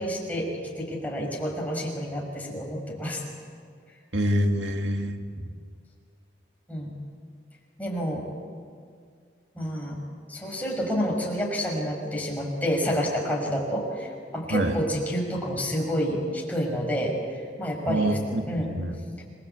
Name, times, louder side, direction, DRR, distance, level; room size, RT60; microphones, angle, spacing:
voice 1, 0.0-3.2 6.7-7.0 7.8-8.3 9.5-10.0 10.3-18.2 18.5-18.8 19.2-19.3, equal, 10° left, -2 dB, 6.1 m, -29 dB
voice 2, 4.1-5.5 14.5-14.8 17.9-18.4 18.7-19.0, right 1 dB, 80° right, 4 dB, 2.1 m, -26 dB
27.5 x 23.0 x 8.3 m, 2.2 s
head